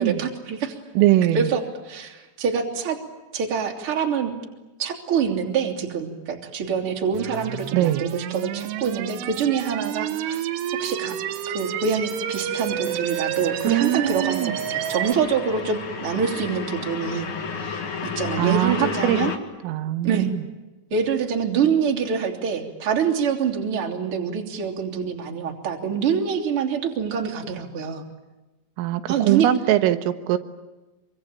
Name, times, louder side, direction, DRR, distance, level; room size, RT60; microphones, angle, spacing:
voice 1, 0.0-0.8 1.3-3.0 3.3-4.3 4.8-10.4 10.8-11.2 11.5-17.3 17.6-17.8 18.1-19.3 20.0-20.3 20.9-28.0 29.1-29.5, right 6 dB, 30° right, 2 dB, 3.0 m, -25 dB
voice 2, 1.0-1.5 7.7-8.1 13.5-14.6 18.4-19.2 19.6-20.4 28.8-30.4, right 13 dB, 85° right, 9 dB, 3.7 m, -22 dB
sound 1, 7.1-15.1, right 11 dB, 70° right, 2.9 m, -30 dB
sound 2, 10.2-19.4, left 5 dB, 55° left, 1.4 m, -34 dB
25.5 x 24.5 x 8.8 m, 1.1 s
omnidirectional pair, 5.8 m